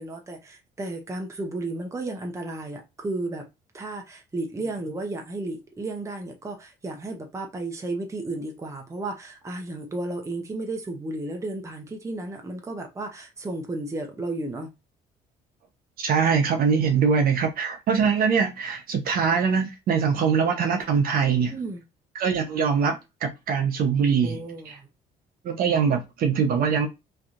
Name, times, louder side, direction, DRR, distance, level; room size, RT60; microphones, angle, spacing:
voice 1, 0.0-3.5 3.7-14.7 21.5-21.8 24.2-24.9, right 2 dB, 15° right, 0.8 m, -33 dB
voice 2, 16.0-21.5 22.1-24.4 24.7-24.8 25.4-26.9, right 6 dB, 60° right, 0.8 m, -23 dB
3.3 x 2.7 x 2.5 m
cardioid pair, 110°, 17 cm